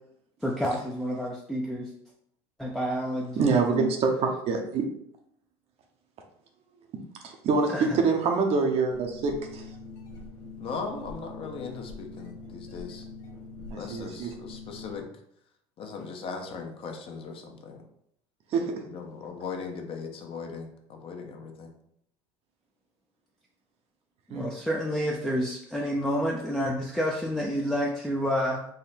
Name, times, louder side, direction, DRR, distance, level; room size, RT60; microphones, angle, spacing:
voice 1, 0.4-1.9 2.6-3.9 7.7-8.0 24.3-28.7, equal, 5° left, -2 dB, 0.5 m, -29 dB
voice 2, 3.4-4.8 7.2-9.6 13.7-14.3 18.5-18.8 24.3-24.5, right 4 dB, 50° right, 3 dB, 0.8 m, -26 dB
sound 1, 8.9-15.0, left 3 dB, 70° left, 1.2 m, -44 dB
voice 3, 10.6-13.0 13.7-15.1 15.8-17.8 18.8-21.7, left 5 dB, 45° left, 3 dB, 0.7 m, -38 dB
3.8 x 2.1 x 4.1 m, 0.72 s
supercardioid pair, 100°, 13 cm